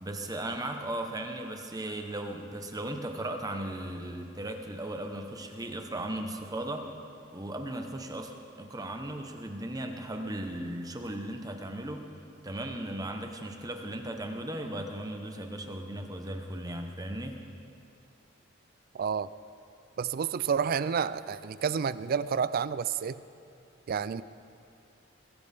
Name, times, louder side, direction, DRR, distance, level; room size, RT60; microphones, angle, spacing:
voice 1, 0.0-6.9 7.3-12.1 12.4-17.4, right 1 dB, 20° right, 4 dB, 0.9 m, -37 dB
voice 2, 18.9-19.3 20.0-23.2 23.9-24.2, right 6 dB, 45° right, 16 dB, 0.3 m, -30 dB
21.0 x 15.0 x 3.5 m, 2.6 s
head